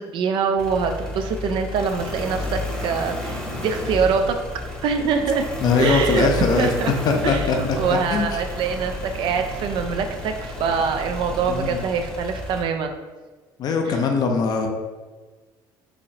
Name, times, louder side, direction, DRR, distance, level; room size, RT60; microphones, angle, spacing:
voice 1, 0.0-4.4 4.8-5.5 5.8-6.3 6.6-6.9 7.2-13.0 13.9-14.0, right 5 dB, 60° right, 6 dB, 0.3 m, -24 dB
sound 1, 0.6-12.6, left 1 dB, 10° left, 0.8 m, -31 dB
voice 2, 5.6-6.7 7.1-7.6 8.1-8.4 11.5-11.8 13.6-14.7, left 4 dB, 45° left, 4 dB, 0.5 m, -21 dB
4.0 x 2.9 x 2.7 m, 1.3 s
cardioid pair, 115°, 9 cm